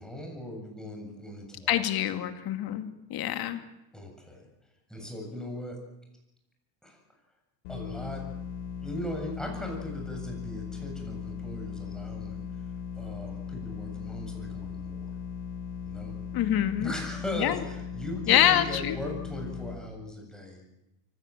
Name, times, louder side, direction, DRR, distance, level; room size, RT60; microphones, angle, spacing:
voice 1, 0.0-1.8 3.9-4.5 4.9-5.8 6.8-7.0 7.7-8.3 8.8-12.4 13.0-15.1 15.8-16.2 16.8-20.6, left 1 dB, ahead, 1 dB, 7.5 m, -38 dB
voice 2, 1.7-3.6 16.3-16.9 17.4-17.6 18.3-19.0, left 12 dB, 50° left, 8 dB, 2.5 m, -25 dB
sound 1, 7.6-19.7, left 7 dB, 75° left, 4.7 m, -38 dB
24.0 x 16.5 x 9.0 m, 0.90 s
supercardioid pair, 115°, 48 cm